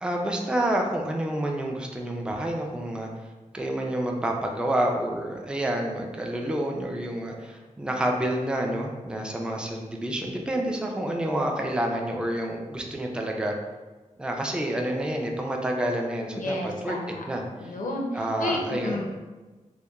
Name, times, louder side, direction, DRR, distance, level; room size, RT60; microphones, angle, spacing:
voice 1, 0.0-3.1 3.5-13.5 14.2-17.0 17.3-17.4 18.1-19.1, right 1 dB, 5° right, 1 dB, 0.3 m, -28 dB
voice 2, 16.3-17.2 17.6-19.1, left 1 dB, 85° left, 0 dB, 0.4 m, -31 dB
2.9 x 2.1 x 2.2 m, 1.2 s
wide cardioid pair, 75°, 13 cm